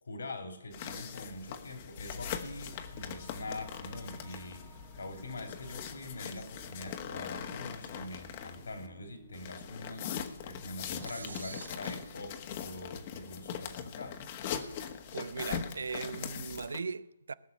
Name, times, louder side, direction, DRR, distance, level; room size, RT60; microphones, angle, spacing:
voice 1, 0.0-14.2, left 2 dB, 75° left, 3.5 m, -44 dB
sound 1, 0.7-8.9 9.3-16.8, left 8 dB, 35° left, 1.4 m, -41 dB
sound 2, 2.0-11.4, left 4 dB, 55° left, 1.3 m, -54 dB
sound 3, 2.4-13.3, right 7 dB, 15° right, 1.3 m, -59 dB
voice 2, 11.0-11.7 15.1-17.3, right 4 dB, 75° right, 0.7 m, -39 dB
18.5 x 6.4 x 9.6 m
hypercardioid pair, 155°, 0 cm